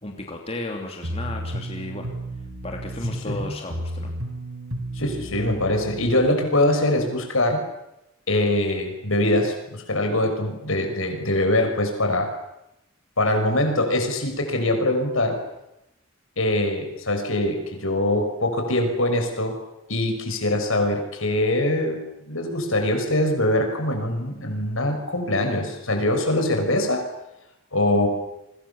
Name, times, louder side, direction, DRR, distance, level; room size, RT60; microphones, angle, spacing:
voice 1, 0.0-2.1 2.6-4.1, left 2 dB, 30° left, 2 dB, 2.9 m, -34 dB
sound 1, 1.0-6.3, right 1 dB, 75° right, 4.9 m, -33 dB
voice 2, 4.9-7.6 8.3-12.3 13.2-15.4 16.4-19.6 19.9-27.1 27.7-28.1, left 1 dB, 70° left, 5 dB, 6.2 m, -23 dB
29.0 x 24.5 x 7.2 m, 0.89 s
head